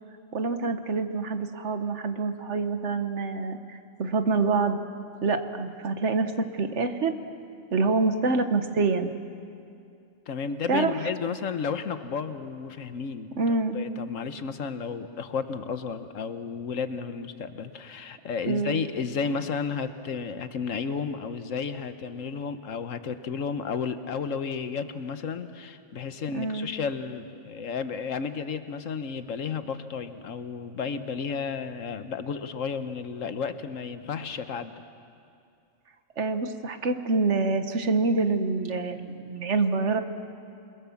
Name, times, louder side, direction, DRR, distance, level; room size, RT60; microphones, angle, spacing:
voice 1, 0.3-4.8 5.2-7.2 7.7-9.1 10.7-11.0 13.4-13.8 18.5-18.8 26.3-26.7 36.2-40.0, right 3 dB, 65° right, 8 dB, 1.5 m, -26 dB
voice 2, 10.3-34.7, left 6 dB, 80° left, 10 dB, 1.4 m, -32 dB
27.5 x 22.0 x 7.2 m, 2.5 s
omnidirectional pair, 1.3 m